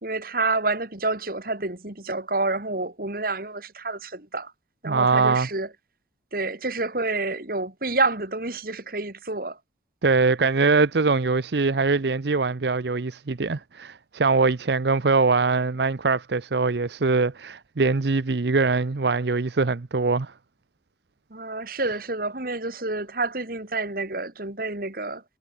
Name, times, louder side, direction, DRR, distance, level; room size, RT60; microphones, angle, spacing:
voice 1, 0.0-4.5 4.8-5.7 6.3-9.6 21.3-25.2, right 3 dB, 50° right, 2.8 m, -28 dB
voice 2, 4.9-5.5 10.0-20.3, right 4 dB, 70° right, 0.7 m, -22 dB
head